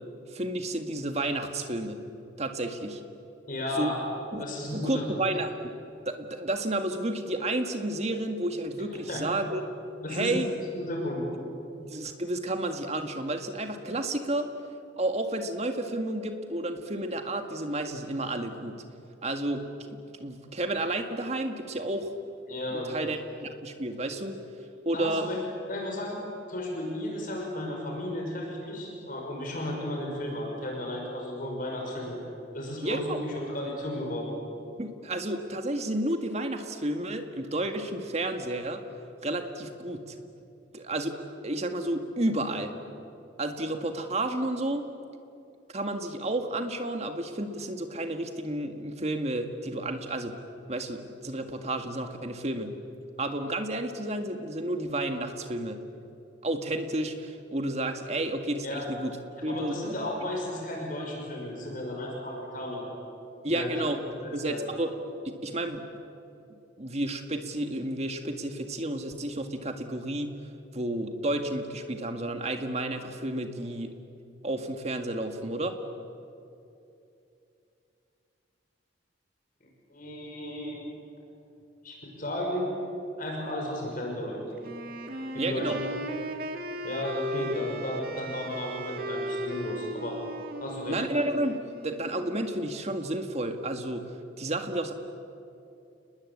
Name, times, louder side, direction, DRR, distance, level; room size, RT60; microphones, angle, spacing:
voice 1, 0.3-2.0 2.4-3.0 3.8-3.9 4.3-4.4 4.7-5.5 6.1-9.6 10.1-10.5 11.8-14.5 15.0-18.8 19.2-22.1 22.7-24.3 24.9-25.3 32.8-33.2 34.8-38.8 39.2-40.2 40.7-41.2 41.4-42.7 43.4-44.8 45.7-50.4 50.7-52.7 53.2-55.8 56.4-59.2 59.4-59.9 63.4-64.9 65.2-65.8 66.8-70.3 70.7-73.9 74.4-75.8 85.4-85.8 90.9-91.6 91.8-94.9, right 1 dB, 35° right, 6 dB, 2.0 m, -31 dB
voice 2, 3.5-3.9 4.4-5.2 9.1-9.2 10.0-10.4 10.8-11.3 22.5-22.9 24.9-25.4 25.7-26.2 26.5-32.2 32.5-34.3 58.6-58.8 59.5-62.9 63.5-63.8 64.2-64.7 79.9-80.8 81.8-82.6 83.2-84.4 85.3-85.7 86.8-90.2 90.6-91.0, left 1 dB, 50° left, 0 dB, 6.1 m, -34 dB
Wind instrument woodwind instrument, 84.6-92.5, equal, 55° right, 2.1 m, -37 dB
30.0 x 20.5 x 8.6 m, 2.7 s
head